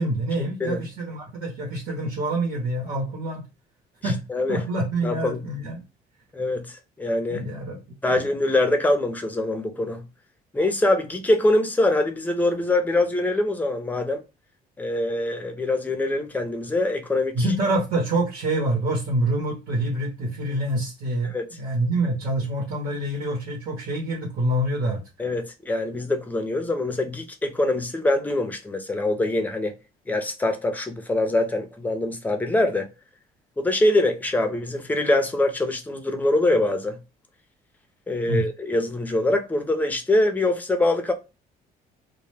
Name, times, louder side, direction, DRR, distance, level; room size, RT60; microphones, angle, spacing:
voice 1, 0.0-3.4 4.0-4.2 4.5-5.8 7.3-8.1 17.3-25.0 38.2-38.4, right 1 dB, 70° right, 0.9 m, -26 dB
voice 2, 4.0-4.6 5.0-5.4 6.3-7.5 8.0-10.0 10.5-14.2 14.8-17.5 21.2-21.5 25.2-29.7 30.1-32.9 33.6-37.0 38.1-41.1, left 2 dB, 10° left, 0.5 m, -24 dB
2.1 x 2.1 x 3.2 m
cardioid pair, 110°, 17 cm